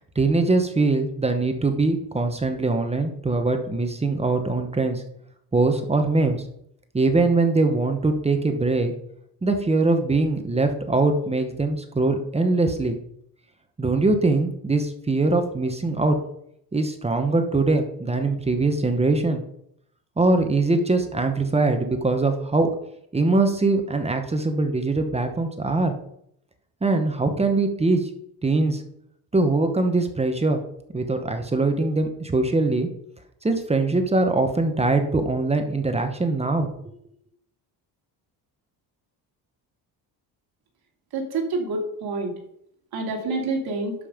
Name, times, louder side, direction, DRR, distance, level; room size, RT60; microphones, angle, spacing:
voice 1, 0.1-5.0 5.5-6.4 6.9-8.9 9.4-13.0 13.8-16.2 16.7-19.4 20.2-22.7 23.1-25.9 26.8-28.1 28.4-28.8 29.3-30.6 30.9-32.9 33.4-36.7, right 3 dB, 15° right, 6 dB, 1.0 m, -22 dB
voice 2, 41.1-42.3 42.9-43.9, right 3 dB, 65° right, 1 dB, 2.7 m, -27 dB
11.5 x 5.4 x 5.1 m, 0.72 s
cardioid pair, 140°, 40 cm